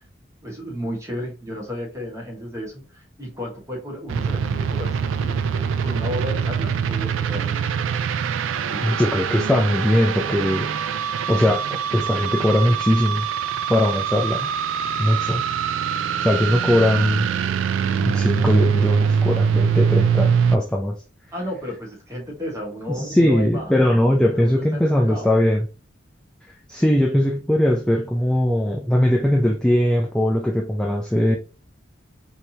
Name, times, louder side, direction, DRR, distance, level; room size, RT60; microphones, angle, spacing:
voice 1, 0.4-7.7 8.6-8.9 21.3-23.7 24.3-24.8 25.1-25.3, equal, 15° right, 1.2 m, -33 dB
sound 1, 4.1-20.6, right 7 dB, 90° right, 0.3 m, -23 dB
voice 2, 8.8-10.7 11.3-13.3 13.7-14.5 15.0-15.5 16.2-17.3 18.0-21.0 22.9-25.7 26.7-31.4, left 1 dB, 5° left, 0.3 m, -20 dB
3.3 x 2.8 x 2.8 m
head